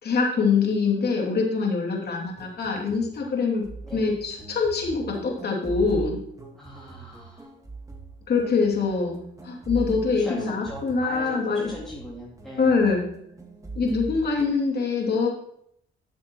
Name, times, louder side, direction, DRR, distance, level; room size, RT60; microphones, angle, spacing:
voice 1, 0.0-3.6 3.9-6.2 8.3-11.6 12.6-13.0 13.8-15.3, left 4 dB, 55° left, -1 dB, 2.8 m, -24 dB
sound 1, 2.3-14.6, right 3 dB, 15° right, 1.7 m, -41 dB
voice 2, 6.5-7.5 10.0-12.8, equal, ahead, -5 dB, 2.4 m, -39 dB
12.0 x 7.4 x 3.1 m, 0.71 s
cardioid pair, 90°, 20 cm